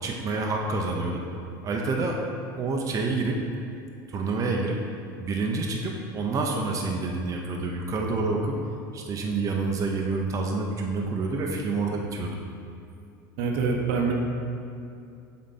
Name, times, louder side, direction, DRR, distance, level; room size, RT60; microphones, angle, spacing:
voice 1, 0.0-1.2 1.6-2.2 2.6-3.5 4.1-4.8 5.2-8.6 8.9-12.4, right 3 dB, 30° right, 0 dB, 0.8 m, -28 dB
voice 2, 13.4-14.1, right 5 dB, 70° right, 0 dB, 1.0 m, -25 dB
7.4 x 4.3 x 4.2 m, 2.5 s
supercardioid pair, 105°, 11 cm